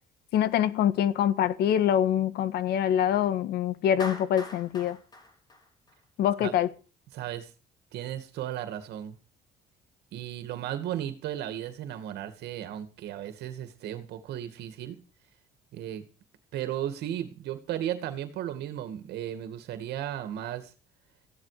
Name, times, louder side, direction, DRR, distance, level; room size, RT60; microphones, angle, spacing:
voice 1, 0.3-5.0 6.2-6.7, left 10 dB, 75° left, 1.6 m, -25 dB
Clapping, 4.0-6.3, left 2 dB, 25° left, 4.5 m, -42 dB
voice 2, 7.1-7.5 7.9-9.2 10.1-15.0 15.7-16.0 16.5-20.7, right 11 dB, 75° right, 2.2 m, -35 dB
15.5 x 11.0 x 5.1 m
cardioid pair, 110°, 17 cm